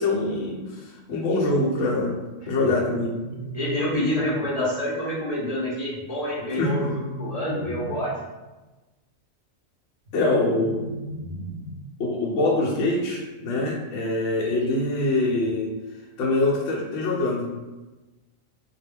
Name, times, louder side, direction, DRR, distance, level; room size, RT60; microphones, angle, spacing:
voice 1, 0.0-2.2 2.5-3.1 6.5-6.9 10.1-10.8 12.0-15.7 16.2-17.5, left 2 dB, 70° left, -3 dB, 0.8 m, -24 dB
sound 1, 2.7-4.7 6.4-8.3 10.1-12.0, equal, 60° right, 0.8 m, -37 dB
voice 2, 3.5-8.1, equal, 40° left, -6 dB, 0.6 m, -27 dB
2.3 x 2.1 x 3.2 m, 1.1 s
omnidirectional pair, 1.3 m